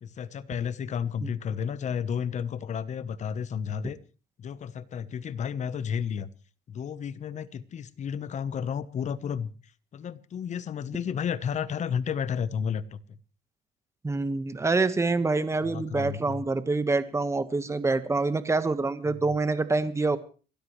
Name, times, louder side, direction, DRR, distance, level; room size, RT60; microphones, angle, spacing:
voice 1, 0.0-4.0 4.4-6.3 6.7-9.5 9.9-13.0 15.4-16.4, left 7 dB, 45° left, 16 dB, 1.0 m, -32 dB
voice 2, 14.0-20.2, right 3 dB, 15° right, 11 dB, 1.4 m, -26 dB
28.5 x 13.0 x 3.2 m, 0.36 s
cardioid pair, 110°, 17 cm